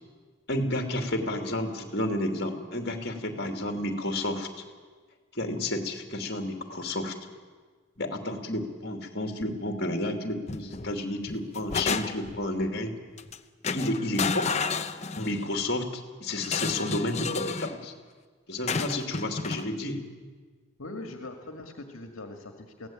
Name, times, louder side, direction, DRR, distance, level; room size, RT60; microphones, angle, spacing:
voice 1, 0.5-4.5 5.3-7.1 8.0-12.9 13.7-14.5 15.2-17.9 18.5-20.0, left 1 dB, 50° left, 5 dB, 2.8 m, -31 dB
sound 1, 10.5-10.9 11.3-12.4 13.2-13.4 13.6-15.5 16.4-17.8 18.7-19.7, left 4 dB, 30° left, 0.8 m, -31 dB
voice 2, 20.8-22.9, left 2 dB, 75° left, 4 dB, 1.9 m, -41 dB
23.0 x 17.0 x 8.8 m, 1.5 s
head